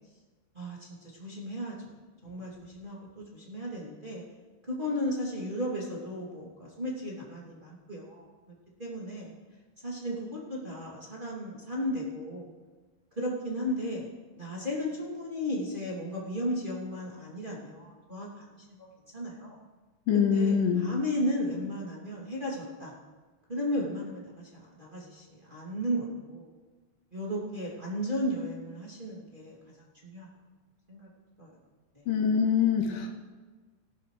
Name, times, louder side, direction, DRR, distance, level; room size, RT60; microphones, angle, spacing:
voice 1, 0.5-4.2 4.6-8.3 8.8-9.3 9.8-12.5 13.2-14.1 14.3-18.9 19.1-19.5 20.1-23.0 23.5-26.5 27.1-30.3 30.9-31.1 31.4-31.6 31.9-32.0, equal, 15° right, -5 dB, 2.4 m, -35 dB
voice 2, 20.1-20.9 32.1-33.1, left 7 dB, 75° left, 3 dB, 2.8 m, -24 dB
19.0 x 11.0 x 3.3 m, 1.3 s
omnidirectional pair, 3.9 m